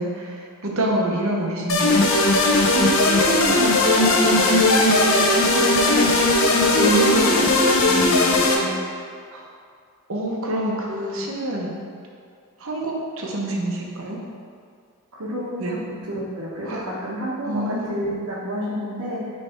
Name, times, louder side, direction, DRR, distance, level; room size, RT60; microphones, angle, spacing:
voice 1, 0.0-2.1 6.8-7.5 9.3-9.4 10.1-11.7 12.6-14.2 15.6-15.7 16.7-16.8 17.5-17.9, right 1 dB, 60° right, -1 dB, 0.9 m, -26 dB
sound 1, 1.7-8.6, left 2 dB, 60° left, 0.7 m, -18 dB
voice 2, 2.6-6.1 6.4-7.2 7.8-8.8 15.1-19.3, right 1 dB, 85° right, -8 dB, 1.0 m, -29 dB
6.5 x 3.4 x 4.3 m, 2.2 s
head